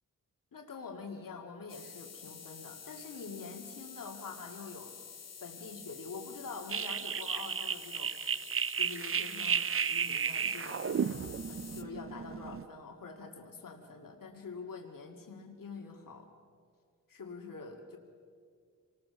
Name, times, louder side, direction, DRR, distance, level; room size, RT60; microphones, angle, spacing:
voice 1, 0.5-5.0 5.4-8.2 8.8-11.0 11.5-16.3 17.1-18.0, left 4 dB, 80° left, 2 dB, 2.2 m, -45 dB
sound 1, 1.7-11.8, left 6 dB, 50° left, 1.0 m, -49 dB
sound 2, 6.7-12.6, right 7 dB, 40° right, 0.5 m, -33 dB
27.0 x 20.0 x 6.9 m, 2.1 s
wide cardioid pair, 135°, 33 cm